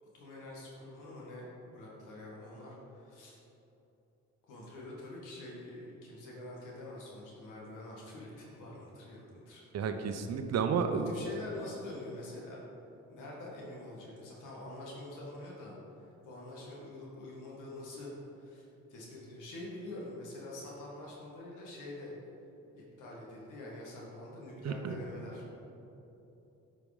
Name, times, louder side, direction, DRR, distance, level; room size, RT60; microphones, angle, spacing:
voice 1, 0.0-3.4 4.5-9.6 11.1-12.6 13.1-22.2 22.7-25.4, left 2 dB, 90° left, -4 dB, 1.7 m, -46 dB
voice 2, 9.7-11.1 24.6-25.0, right 6 dB, 60° right, 7 dB, 0.8 m, -31 dB
8.8 x 5.0 x 5.0 m, 3.0 s
cardioid pair, 90°, 30 cm